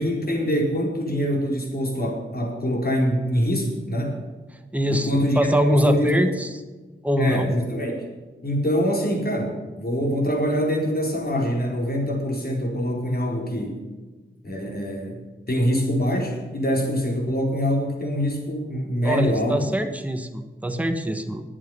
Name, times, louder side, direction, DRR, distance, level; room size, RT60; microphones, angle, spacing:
voice 1, 0.0-4.2 4.9-6.1 7.2-8.0 8.4-13.8 14.4-19.7, equal, 50° left, 0 dB, 4.2 m, -24 dB
voice 2, 4.7-6.5 7.0-7.5 19.0-21.4, equal, 5° right, 6 dB, 1.3 m, -23 dB
21.0 x 7.4 x 5.6 m, 1.3 s
wide cardioid pair, 85°, 20 cm